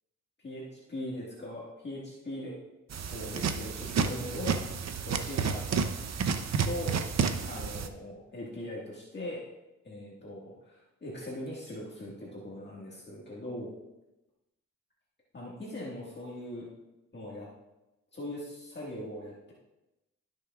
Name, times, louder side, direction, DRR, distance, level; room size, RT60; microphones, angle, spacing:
voice 1, 0.4-2.5 3.1-5.8 6.6-7.0 7.4-9.4 9.8-13.7 15.3-16.7 17.1-17.5 18.1-19.5, left 1 dB, 35° left, -5 dB, 1.8 m, -40 dB
sound 1, 2.9-7.9, right 6 dB, 60° right, 0.7 m, -31 dB
16.0 x 6.5 x 2.4 m, 0.98 s
wide cardioid pair, 110°, 30 cm